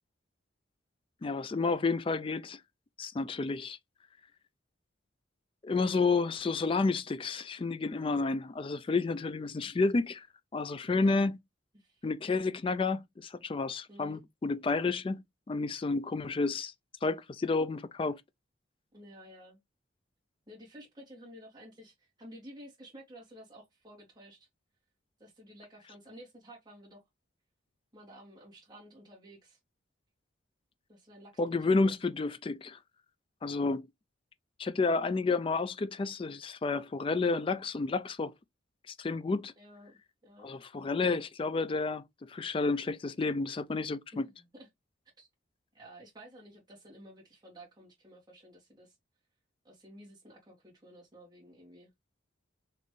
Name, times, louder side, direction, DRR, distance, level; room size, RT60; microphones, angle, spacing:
voice 1, 1.2-2.6 3.0-3.8 5.6-10.3 10.5-11.4 12.0-15.2 15.5-16.7 17.0-18.2 31.4-32.8 33.4-33.8 34.6-38.3 38.9-39.5 40.4-44.3, left 3 dB, 25° left, 0.3 m, -30 dB
voice 2, 11.7-12.1 13.9-14.2 18.9-19.6 20.5-24.5 25.2-27.0 27.9-29.6 30.9-31.3 31.7-32.0 39.6-40.6 44.1-44.7 45.2-45.3 45.7-49.0 49.6-51.9, equal, 20° right, 1.9 m, -52 dB
4.2 x 3.0 x 3.2 m
head